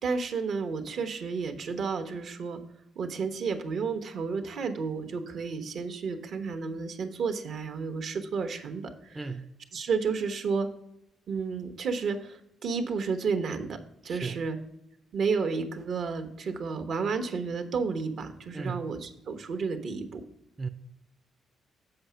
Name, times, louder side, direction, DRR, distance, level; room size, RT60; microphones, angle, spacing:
voice 1, 0.0-2.6 3.0-9.3 9.7-10.7 11.3-13.8 14.0-14.6 15.1-20.2, right 5 dB, 65° right, 7 dB, 1.0 m, -31 dB
voice 2, 9.2-9.5 14.1-14.4 18.5-18.9 20.6-20.7, right 4 dB, 20° right, 5 dB, 0.4 m, -35 dB
7.8 x 5.0 x 5.7 m, 0.78 s
cardioid pair, 90°, 0 cm